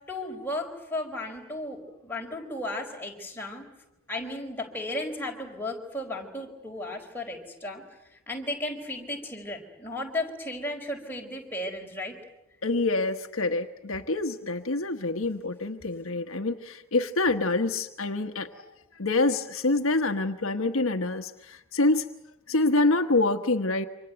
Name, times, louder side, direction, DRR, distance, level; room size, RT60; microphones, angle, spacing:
voice 1, 0.1-3.7 4.1-7.8 8.3-12.1, left 1 dB, 10° left, 0 dB, 4.5 m, -34 dB
voice 2, 12.6-18.7 19.0-22.0 22.5-23.9, left 2 dB, 65° left, 6 dB, 1.2 m, -26 dB
28.0 x 25.5 x 8.1 m, 0.86 s
head